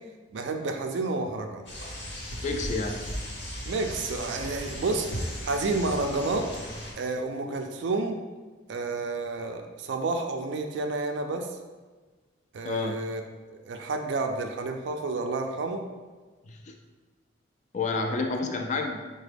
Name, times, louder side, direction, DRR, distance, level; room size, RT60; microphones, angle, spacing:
voice 1, 0.3-1.6 3.7-6.5 6.9-8.2 8.7-11.5 12.5-13.2 13.5-15.9, right 3 dB, 65° right, 5 dB, 0.4 m, -30 dB
sound 1, 1.7-6.9, equal, 60° left, 1.0 m, -36 dB
voice 2, 2.4-3.0 12.6-13.0 16.5-16.7 17.7-19.1, left 3 dB, 35° left, 3 dB, 0.3 m, -29 dB
4.8 x 2.2 x 3.3 m, 1.3 s
head